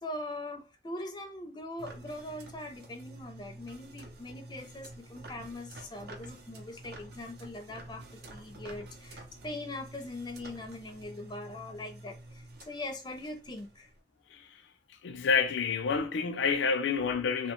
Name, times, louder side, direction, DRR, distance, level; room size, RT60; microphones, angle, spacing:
voice 1, 0.0-13.9, left 1 dB, 25° left, 0.4 m, -41 dB
sound 1, 1.8-14.0, right 1 dB, 60° right, 0.6 m, -49 dB
voice 2, 15.0-17.5, left 5 dB, 85° left, 0.5 m, -28 dB
2.8 x 2.1 x 2.9 m
head